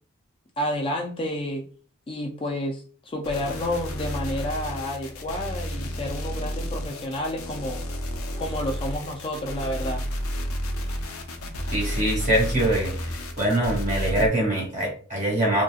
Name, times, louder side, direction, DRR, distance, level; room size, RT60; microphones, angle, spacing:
voice 1, 0.6-1.7 2.1-7.8 8.4-10.0, left 1 dB, 25° left, 0 dB, 0.3 m, -30 dB
sound 1, 3.2-14.3, equal, 70° left, 0.6 m, -31 dB
voice 2, 11.7-12.9 13.4-15.6, right 1 dB, 35° right, -2 dB, 1.2 m, -23 dB
2.8 x 2.7 x 2.3 m, 0.40 s
head